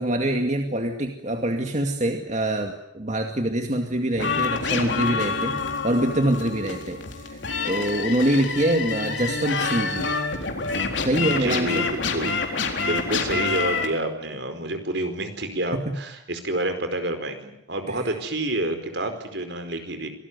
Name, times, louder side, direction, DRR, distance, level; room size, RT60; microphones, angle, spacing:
voice 1, 0.0-5.6 5.8-7.4 7.7-10.1 11.0-11.9 15.7-16.0 17.9-18.0, right 1 dB, 40° right, 4 dB, 2.3 m, -25 dB
sound 1, 4.2-13.9, left 4 dB, 80° left, 4.0 m, -27 dB
voice 2, 11.3-12.4 12.8-20.1, right 1 dB, 65° right, 8 dB, 4.7 m, -28 dB
26.5 x 19.0 x 9.7 m, 0.81 s
head